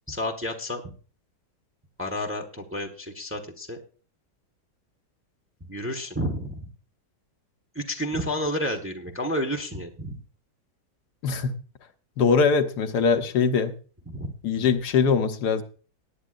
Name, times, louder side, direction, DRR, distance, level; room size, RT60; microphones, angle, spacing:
voice 1, 0.1-0.8 2.0-3.8 5.7-6.7 7.7-10.2 14.1-14.3, equal, 10° right, 3 dB, 0.9 m, -30 dB
voice 2, 11.2-11.5 12.2-13.7 14.4-15.6, left 5 dB, 70° left, 7 dB, 1.4 m, -22 dB
18.0 x 9.7 x 2.5 m, 0.37 s
omnidirectional pair, 1.8 m